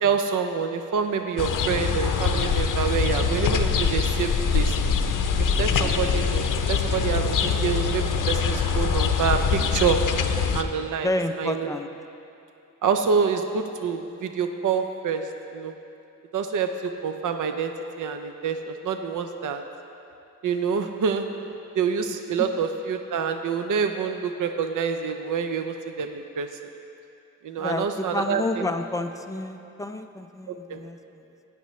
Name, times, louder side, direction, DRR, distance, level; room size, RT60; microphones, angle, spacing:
voice 1, 0.0-4.8 5.4-10.0 10.5-11.1 11.4-11.7 12.8-15.2 15.5-15.7 16.3-17.7 18.0-19.6 20.4-21.3 21.8-26.5 27.4-28.4 30.5-30.8, right 6 dB, 70° right, 6 dB, 0.6 m, -27 dB
sound 1, 1.4-10.6, left 6 dB, 75° left, 0.6 m, -23 dB
voice 2, 5.7-6.0 11.0-11.9 22.4-22.5 27.6-31.0, left 2 dB, 10° left, 6 dB, 0.4 m, -30 dB
16.5 x 9.3 x 3.1 m, 2.7 s
wide cardioid pair, 145°, 32 cm